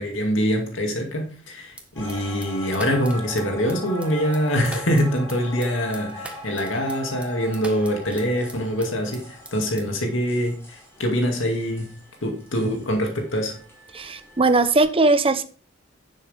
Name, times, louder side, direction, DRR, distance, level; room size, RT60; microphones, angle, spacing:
voice 1, 0.0-11.9 12.2-13.6, equal, 75° left, 2.3 m, -24 dB
sound 1, 1.7-9.2 9.5-10.1, right 2 dB, 5° right, 1.5 m, -42 dB
sound 2, 2.0-14.8, equal, 15° left, 5.2 m, -40 dB
voice 2, 14.0-15.4, right 3 dB, 30° right, 0.8 m, -19 dB
10.5 x 7.7 x 3.5 m
head